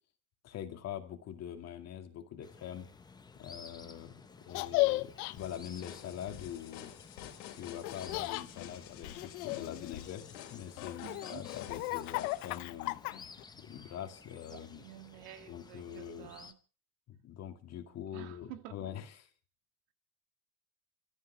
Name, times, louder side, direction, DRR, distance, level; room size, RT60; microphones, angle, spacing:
voice 1, 0.4-2.9 3.3-6.9 7.5-10.2 10.5-13.0 13.5-14.8 15.5-16.3 17.1-19.3, left 10 dB, 30° left, 2.3 m, -44 dB
sound 1, 2.4-16.5, left 4 dB, 10° left, 0.7 m, -55 dB
Laughter, 4.5-5.3 7.8-8.5 9.0-10.3 10.9-13.4, left 20 dB, 60° left, 0.9 m, -34 dB
sound 2, 5.4-12.6, left 12 dB, 80° left, 3.1 m, -49 dB
voice 2, 11.0-11.5 14.5-16.6 18.1-18.8, right 13 dB, 60° right, 2.1 m, -50 dB
28.0 x 13.5 x 3.4 m
supercardioid pair, 145°, 50 cm